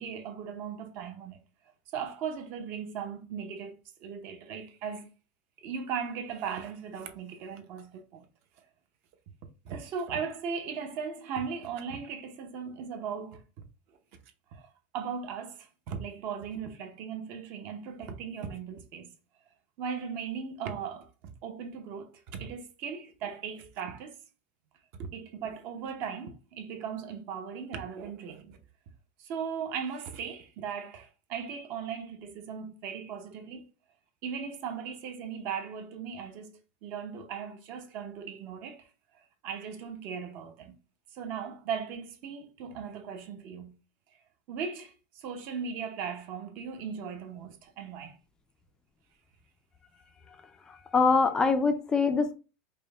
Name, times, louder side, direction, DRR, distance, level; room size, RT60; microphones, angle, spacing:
voice 1, 0.0-1.4 1.9-5.1 5.6-8.2 9.6-13.4 14.5-14.7 14.9-19.1 19.8-24.2 25.0-28.6 29.2-33.6 34.2-38.9 39.4-40.8 41.1-43.8 44.5-48.2, right 6 dB, 40° right, 0.7 m, -38 dB
voice 2, 50.7-52.3, left 4 dB, 15° left, 0.3 m, -24 dB
5.1 x 2.1 x 3.3 m
supercardioid pair, 170°, 6 cm